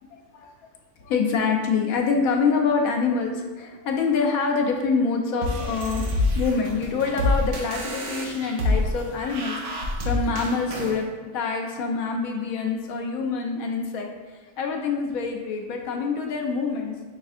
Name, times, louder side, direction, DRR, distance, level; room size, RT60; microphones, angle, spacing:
voice 1, 0.1-0.5 1.0-11.1 11.3-14.1 14.6-17.0, left 5 dB, 70° left, 2 dB, 1.0 m, -26 dB
sound 1, 5.4-11.0, left 2 dB, 80° right, 1.2 m, -27 dB
5.5 x 3.4 x 2.4 m, 1.3 s
omnidirectional pair, 1.6 m